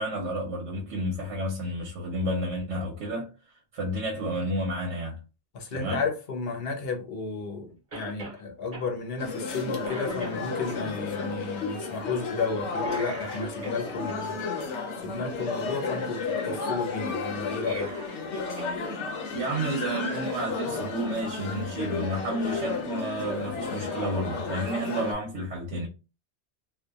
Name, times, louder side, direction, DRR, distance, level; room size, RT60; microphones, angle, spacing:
voice 1, 0.0-3.3 3.7-5.2 5.7-6.0 19.3-25.9, right 1 dB, 85° right, 1.0 m, -31 dB
voice 2, 5.5-14.4 14.7-17.9, left 4 dB, 60° left, 0.9 m, -33 dB
Cough, 7.9-8.4 8.7-8.9 9.4-9.5 9.8-10.8 12.8-14.2 17.4-18.7 19.0-19.1 20.3-20.4, right 3 dB, 45° right, 1.1 m, -40 dB
sound 1, 9.2-25.1, left 4 dB, 85° left, 1.0 m, -33 dB
2.8 x 2.2 x 2.3 m
omnidirectional pair, 1.2 m